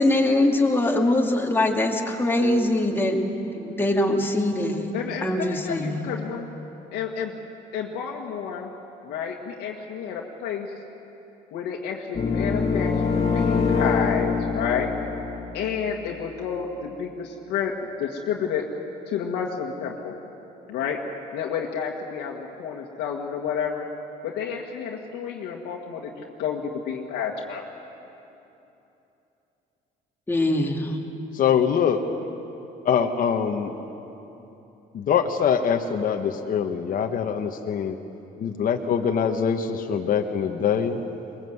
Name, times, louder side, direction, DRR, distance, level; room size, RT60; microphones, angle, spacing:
voice 1, 0.0-3.2 3.6-4.9 5.2-6.0 30.3-31.0, left 1 dB, 15° left, 1 dB, 2.5 m, -22 dB
voice 2, 4.9-6.4 6.9-7.3 7.7-8.7 9.0-10.7 11.5-14.9 15.5-18.7 19.1-20.1 20.7-21.0 21.3-23.9 24.2-27.6, left 7 dB, 85° left, -1 dB, 1.9 m, -30 dB
sound 1, 12.1-16.1, left 5 dB, 35° left, 1.9 m, -24 dB
voice 3, 31.3-32.0 32.8-33.8 34.9-38.0 38.4-41.0, left 7 dB, 55° left, 5 dB, 1.4 m, -23 dB
22.0 x 21.0 x 8.1 m, 3.0 s
cardioid pair, 110°, 17 cm